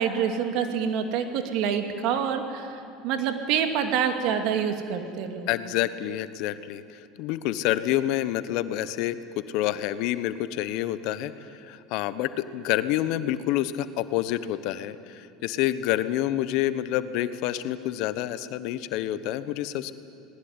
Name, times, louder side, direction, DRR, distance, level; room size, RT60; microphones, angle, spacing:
voice 1, 0.0-5.5, right 7 dB, 65° right, 6 dB, 2.4 m, -27 dB
voice 2, 5.5-9.2 9.5-19.9, left 13 dB, 65° left, 13 dB, 1.0 m, -28 dB
20.0 x 19.5 x 9.7 m, 2.5 s
hypercardioid pair, 90°, 0 cm